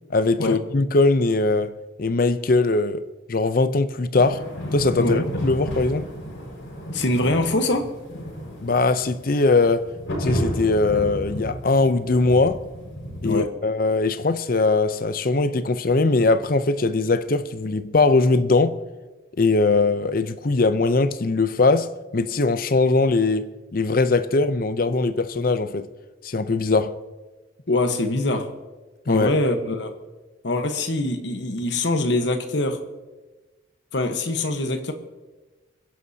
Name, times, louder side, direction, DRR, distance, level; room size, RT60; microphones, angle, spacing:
voice 1, 0.1-1.7 2.0-3.0 3.3-4.4 4.7-6.1 8.6-9.9 10.2-12.6 13.2-18.8 19.4-25.9 26.2-26.9 29.1-29.3, left 3 dB, 45° left, 0.6 m, -21 dB
sound 1, 4.2-13.3, equal, 90° left, 5.2 m, -32 dB
voice 2, 6.9-7.9 13.2-13.5 27.7-28.5 29.1-29.9 30.4-32.8 33.9-34.9, left 2 dB, 65° left, 1.2 m, -23 dB
26.0 x 11.0 x 2.8 m
head